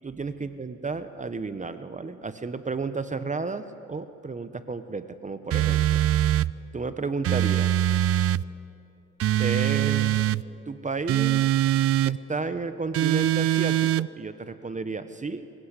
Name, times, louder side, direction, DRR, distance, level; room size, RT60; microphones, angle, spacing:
voice 1, 0.0-5.8 6.7-7.7 9.4-10.2 10.7-11.4 12.1-15.5, right 4 dB, 25° right, 11 dB, 0.9 m, -32 dB
sound 1, 5.5-6.5 7.2-8.4 9.2-10.4 11.1-12.2 12.9-14.1, right 12 dB, 50° right, 0.4 m, -22 dB
25.0 x 16.0 x 8.2 m, 2.7 s
cardioid pair, 90°, 30 cm